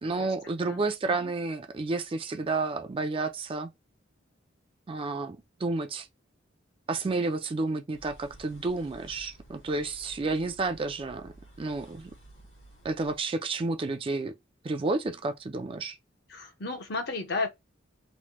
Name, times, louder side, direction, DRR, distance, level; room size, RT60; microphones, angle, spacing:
voice 1, 0.0-3.7 4.9-6.1 6.9-12.1 12.8-14.4 14.6-16.0, right 3 dB, 30° right, 0.4 m, -31 dB
sound 1, 7.9-13.2, right 1 dB, 80° left, 1.5 m, -53 dB
voice 2, 16.3-17.5, left 3 dB, 60° left, 0.8 m, -33 dB
3.1 x 2.1 x 2.8 m
head